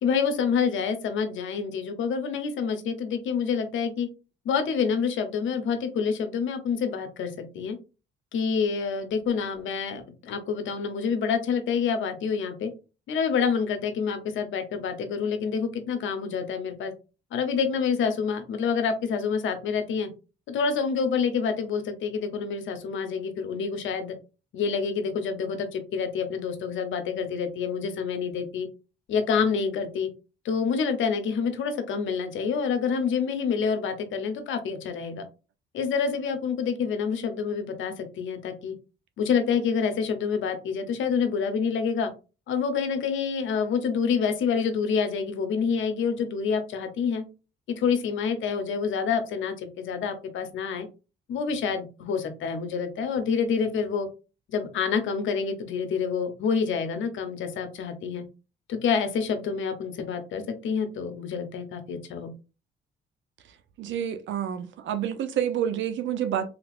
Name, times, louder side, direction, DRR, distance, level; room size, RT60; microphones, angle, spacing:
voice 1, 0.0-4.1 4.4-7.8 8.3-12.7 13.1-16.9 17.3-20.1 20.5-24.2 24.5-28.7 29.1-30.1 30.4-35.2 35.7-38.7 39.2-42.1 42.5-47.2 47.7-50.9 51.3-54.1 54.5-58.2 58.7-62.3, left 6 dB, 75° left, 0.8 m, -27 dB
voice 2, 63.8-66.5, right 9 dB, 70° right, 0.6 m, -28 dB
3.3 x 2.9 x 2.5 m
cardioid pair, 90°, 20 cm